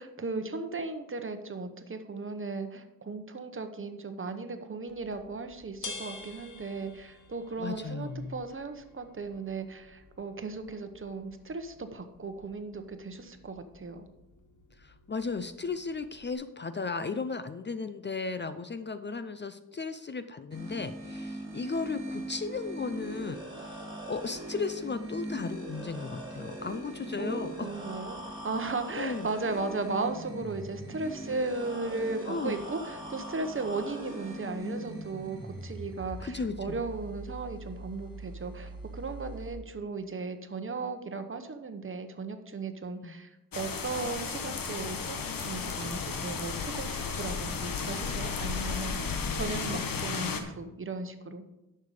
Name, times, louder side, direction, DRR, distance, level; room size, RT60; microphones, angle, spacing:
voice 1, 0.0-14.0 27.2-45.2 45.4-51.5, right 3 dB, 35° right, 8 dB, 1.0 m, -36 dB
sound 1, 4.9-16.3, left 4 dB, 60° left, 1.4 m, -50 dB
voice 2, 7.6-8.3 14.8-23.4 23.7-23.8 24.1-27.7 29.0-29.3 32.3-32.6 36.2-36.8 43.0-43.1, left 4 dB, 35° left, 11 dB, 0.5 m, -35 dB
sound 2, 20.5-39.5, right 1 dB, 15° right, 3.1 m, -41 dB
sound 3, 43.5-50.4, left 5 dB, 75° left, 1.2 m, -34 dB
10.5 x 6.7 x 4.9 m, 0.99 s
wide cardioid pair, 125°, 34 cm